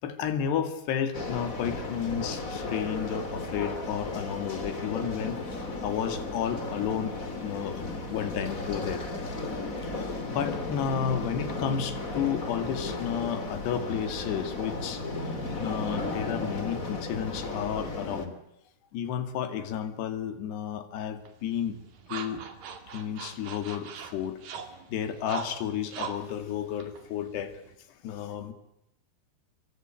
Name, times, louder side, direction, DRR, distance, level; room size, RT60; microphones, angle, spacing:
voice 1, 0.0-7.1 7.4-7.8 8.1-9.0 9.4-9.5 9.9-15.0 15.6-18.4 18.9-21.8 22.1-22.4 22.9-24.4 24.9-27.5 28.0-28.5, left 8 dB, 70° left, 9 dB, 4.2 m, -32 dB
sound 1, 1.1-18.3, left 2 dB, 25° left, 2.4 m, -35 dB
sound 2, 21.3-27.8, right 6 dB, 55° right, 4.0 m, -42 dB
28.0 x 23.5 x 9.0 m, 0.83 s
omnidirectional pair, 5.1 m